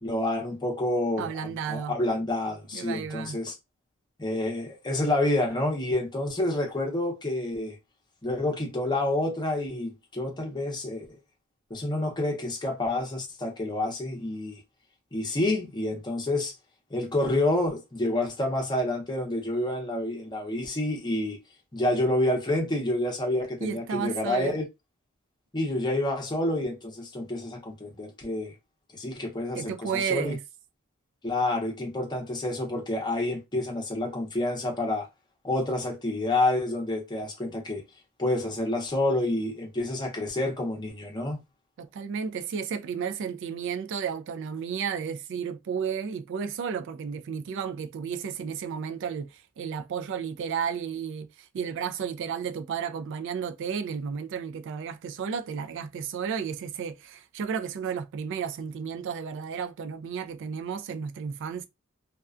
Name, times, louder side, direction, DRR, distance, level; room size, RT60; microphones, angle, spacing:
voice 1, 0.0-3.5 4.2-7.7 8.2-11.1 11.7-14.6 15.1-16.5 16.9-21.4 21.7-24.6 25.5-28.5 28.9-30.3 31.2-35.1 35.4-37.8 38.2-41.4, left 1 dB, 20° left, 0.7 m, -28 dB
voice 2, 1.2-2.0 2.7-3.4 23.6-24.6 29.6-30.4 41.8-61.7, right 7 dB, 55° right, 0.3 m, -33 dB
2.3 x 2.2 x 2.4 m
head